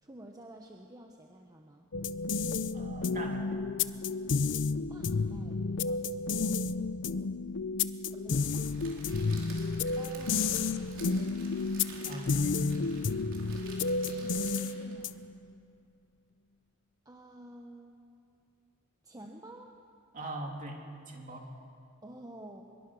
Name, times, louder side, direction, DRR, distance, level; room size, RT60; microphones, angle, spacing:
voice 1, 0.0-1.9 4.9-6.6 8.1-9.1 10.0-10.6 14.1-15.2 17.0-18.0 19.0-19.8 21.3-21.5 22.0-22.6, right 1 dB, 15° right, 2 dB, 1.0 m, -50 dB
sound 1, 1.9-15.4, left 4 dB, 60° left, 0.6 m, -31 dB
voice 2, 2.7-3.6 12.0-12.8 20.1-20.8 21.1-21.5, right 2 dB, 40° right, 1 dB, 2.9 m, -41 dB
Crackle, 8.3-15.0, right 3 dB, 65° right, 4.3 m, -50 dB
23.5 x 22.5 x 6.3 m, 2.5 s
head